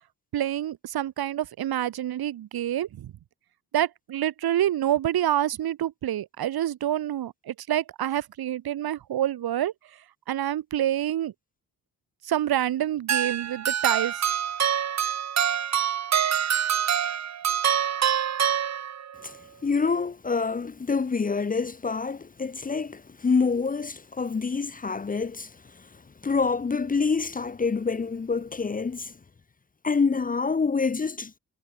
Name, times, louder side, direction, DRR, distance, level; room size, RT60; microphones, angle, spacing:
voice 1, 0.3-3.1 3.7-9.7 10.3-11.3 12.2-14.3, right 12 dB, 90° right, 4.3 m, -27 dB
sound 1, 13.1-19.2, right 9 dB, 45° right, 1.9 m, -25 dB
voice 2, 19.2-29.1 29.8-31.4, left 4 dB, 25° left, 1.3 m, -27 dB
wide cardioid pair, 175°, 36 cm